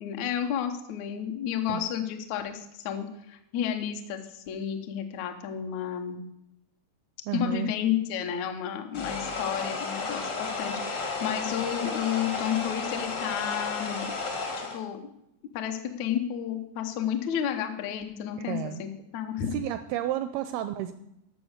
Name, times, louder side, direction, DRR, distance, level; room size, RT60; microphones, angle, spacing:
voice 1, 0.0-6.2 7.3-14.1 14.6-15.0 15.5-19.6, left 9 dB, 85° left, 5 dB, 1.6 m, -31 dB
voice 2, 7.3-7.7 18.4-18.8 19.5-20.9, right 11 dB, 85° right, 11 dB, 2.2 m, -31 dB
sound 1, 8.9-14.8, left 4 dB, 65° left, 1.0 m, -33 dB
13.0 x 6.3 x 6.6 m, 0.83 s
omnidirectional pair, 4.9 m